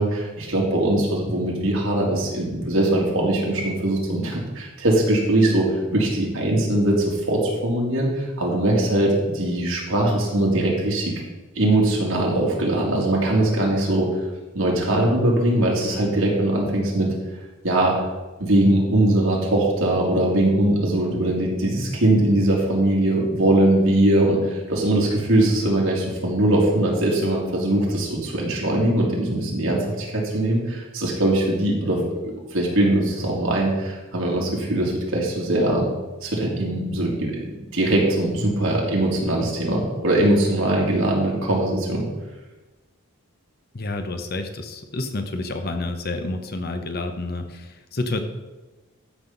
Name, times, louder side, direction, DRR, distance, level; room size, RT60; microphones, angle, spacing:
voice 1, 0.0-11.1 11.6-14.1 14.5-17.1 17.6-18.0 18.4-32.0 32.5-35.9 36.2-42.1, right 1 dB, 75° right, -2 dB, 2.5 m, -21 dB
voice 2, 43.7-48.2, left 2 dB, 45° left, 7 dB, 0.9 m, -29 dB
13.5 x 5.8 x 3.9 m, 1.2 s
head